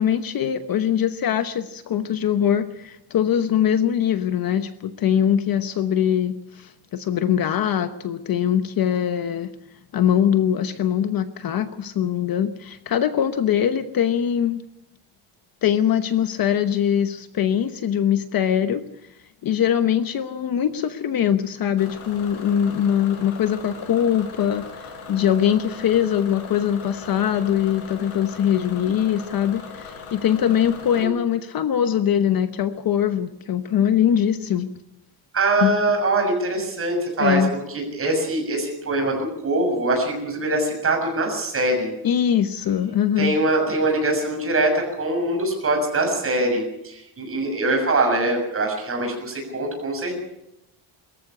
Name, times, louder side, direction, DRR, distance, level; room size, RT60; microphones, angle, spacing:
voice 1, 0.0-9.5 9.9-14.6 15.6-18.8 19.4-34.7 35.6-35.7 37.2-37.5 42.0-43.3, left 9 dB, 45° left, 10 dB, 1.0 m, -22 dB
Bus / Engine, 21.8-31.0, left 5 dB, 70° left, 6.6 m, -39 dB
voice 2, 35.3-41.9 43.2-50.2, right 2 dB, 25° right, 2 dB, 6.8 m, -23 dB
23.0 x 14.5 x 8.5 m, 0.83 s
cardioid pair, 165°, 49 cm